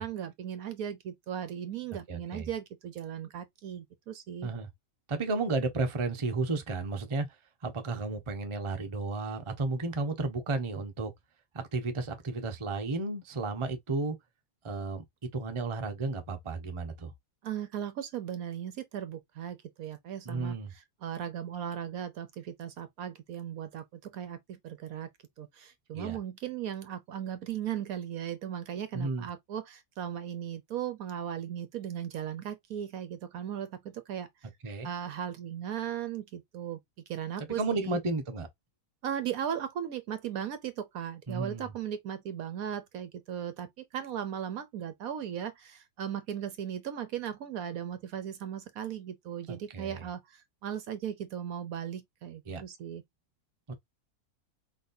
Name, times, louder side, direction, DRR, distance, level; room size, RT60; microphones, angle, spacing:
voice 1, 0.0-4.5 17.4-25.1 25.4-34.5 34.8-36.8 37.1-38.0 39.0-53.0, right 9 dB, 65° right, 1.1 m, -37 dB
voice 2, 2.1-2.5 4.4-4.7 5.1-7.3 7.6-11.1 11.5-14.2 14.6-15.0 15.3-17.1 20.2-20.7 25.9-26.2 28.9-29.3 34.6-34.9 37.4-38.5 41.3-41.7 49.5-50.0 52.5-52.6 53.7-53.8, right 3 dB, 25° right, 0.8 m, -33 dB
4.8 x 4.0 x 2.6 m
omnidirectional pair, 1.7 m